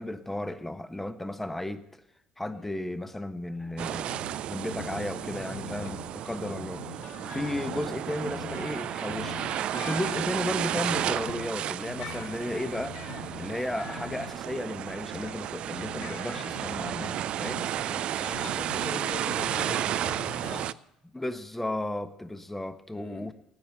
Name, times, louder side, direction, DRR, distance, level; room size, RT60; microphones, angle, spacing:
voice 1, 0.0-1.8 2.4-4.1 4.5-6.8 7.2-9.4 9.7-17.7 21.1-23.3, left 1 dB, 10° left, 10 dB, 1.1 m, -34 dB
voice 2, 2.5-2.8 5.8-6.0 6.3-6.5 7.1-7.4 17.8-20.7 22.9-23.2, left 4 dB, 45° left, 0 dB, 4.4 m, -43 dB
sound 1, 3.8-20.7, right 11 dB, 55° right, 0.4 m, -33 dB
sound 2, 4.1-11.6 11.9-15.4 15.7-18.0 18.3-19.0 19.2-20.5, left 8 dB, 60° left, 1.4 m, -44 dB
17.5 x 9.1 x 6.5 m, 0.82 s
figure-of-eight pair, 55°, 2 cm